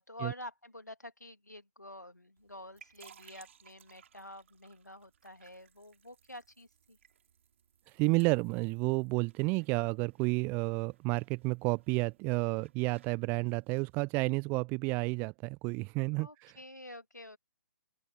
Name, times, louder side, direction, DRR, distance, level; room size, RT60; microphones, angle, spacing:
voice 1, 0.0-7.0 16.2-17.4, left 1 dB, 85° left, 2.2 m, -48 dB
sound 1, 2.4-13.9, right 8 dB, 50° right, 4.6 m, -63 dB
voice 2, 7.9-16.6, right 28 dB, 20° right, 0.6 m, -31 dB
open air
figure-of-eight pair, 130°, 9 cm